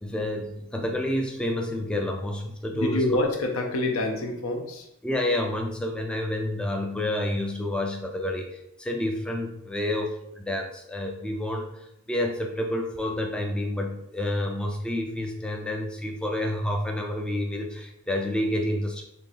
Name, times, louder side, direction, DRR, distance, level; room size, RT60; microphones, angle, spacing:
voice 1, 0.0-3.2 5.0-19.0, left 1 dB, 5° left, 2 dB, 0.3 m, -29 dB
voice 2, 2.7-4.9, left 2 dB, 80° left, 3 dB, 0.8 m, -26 dB
4.3 x 3.1 x 3.1 m, 0.80 s
head